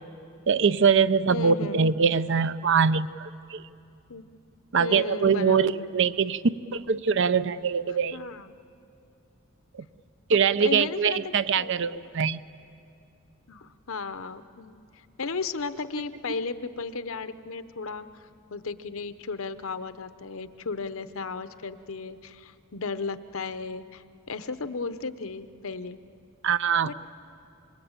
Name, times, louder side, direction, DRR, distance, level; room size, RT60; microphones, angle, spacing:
voice 1, 0.5-3.6 4.7-6.4 6.7-8.2 9.8-9.9 10.3-12.4 26.4-26.9, right 6 dB, 60° right, 14 dB, 0.6 m, -23 dB
voice 2, 1.3-1.8 4.1-4.2 4.8-6.0 8.1-8.5 10.3-11.7 13.5-14.8 15.2-18.1 18.5-26.0 26.8-26.9, left 4 dB, 75° left, 12 dB, 0.8 m, -34 dB
26.5 x 22.5 x 8.9 m, 2.6 s
head